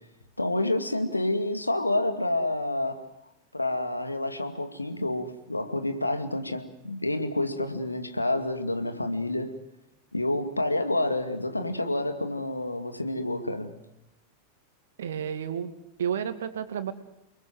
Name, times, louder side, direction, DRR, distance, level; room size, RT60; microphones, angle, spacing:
voice 1, 0.4-3.1 3.5-9.6 10.1-13.8, left 1 dB, 85° left, 2.4 m, -28 dB
voice 2, 15.0-15.7 16.0-16.9, right 8 dB, 60° right, 2.3 m, -31 dB
29.5 x 21.0 x 7.9 m
figure-of-eight pair, 90°, 0 cm